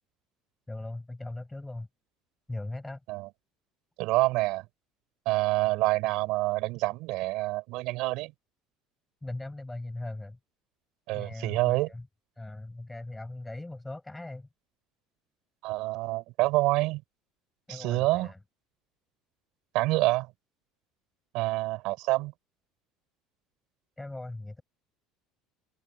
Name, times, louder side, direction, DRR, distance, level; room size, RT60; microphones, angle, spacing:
voice 1, 0.7-1.9 2.5-3.0 9.2-10.4 11.1-12.1 12.4-14.5 17.7-18.4 24.0-24.6, left 2 dB, 10° left, 6.2 m, -39 dB
voice 2, 4.0-4.6 5.2-8.3 11.1-11.9 15.6-17.0 17.7-18.3 19.7-20.3 21.3-22.3, right 20 dB, 70° right, 4.7 m, -27 dB
supercardioid pair, 115°, 0 cm